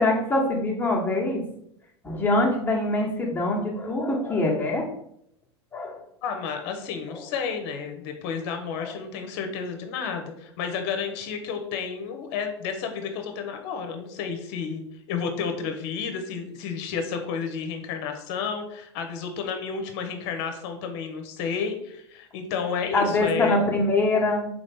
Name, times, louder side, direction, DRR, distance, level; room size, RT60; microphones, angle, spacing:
voice 1, 0.0-1.4 2.0-4.9 5.7-6.0 7.1-7.2 8.8-8.9 22.9-24.5, left 2 dB, 15° left, -2 dB, 1.4 m, -24 dB
voice 2, 6.2-14.8 15.1-23.6, left 6 dB, 55° left, 5 dB, 1.0 m, -31 dB
3.8 x 3.5 x 3.6 m, 0.72 s
hypercardioid pair, 90°, 15 cm